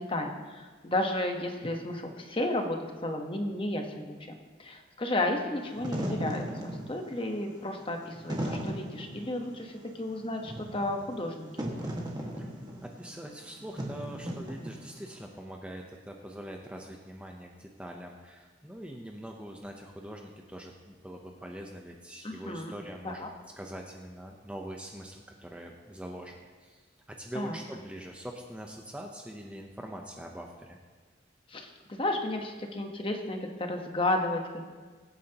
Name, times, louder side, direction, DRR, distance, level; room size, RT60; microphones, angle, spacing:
voice 1, 0.0-11.7 22.2-22.7 23.0-23.3 27.3-27.6 31.5-34.6, left 1 dB, 25° left, 4 dB, 1.1 m, -33 dB
Wind / Fire, 5.6-15.1, equal, 20° right, 1.7 m, -37 dB
voice 2, 12.8-23.2 23.6-26.9 27.2-30.8, equal, 5° right, 1 dB, 0.8 m, -43 dB
22.5 x 9.3 x 2.9 m, 1.5 s
head